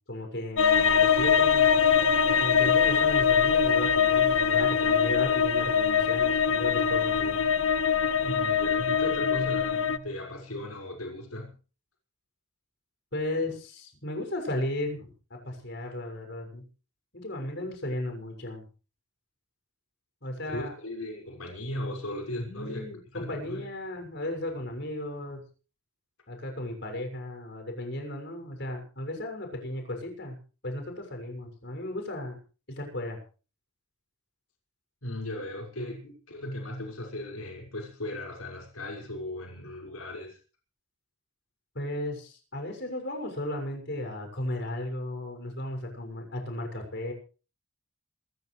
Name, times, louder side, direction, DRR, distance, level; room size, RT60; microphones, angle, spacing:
voice 1, 0.1-1.7 2.3-7.4 13.1-15.1 15.4-16.6 17.1-18.7 20.2-20.7 22.4-25.4 26.3-30.4 30.6-32.4 32.7-33.2 41.7-47.1, left 1 dB, 55° left, 4 dB, 6.8 m, -35 dB
sound 1, 0.6-10.0, left 7 dB, 70° left, 1.3 m, -23 dB
voice 2, 8.2-11.6 20.5-23.7 35.0-40.4, left 1 dB, 90° left, 1 dB, 6.1 m, -37 dB
27.0 x 14.0 x 3.4 m, 0.37 s
head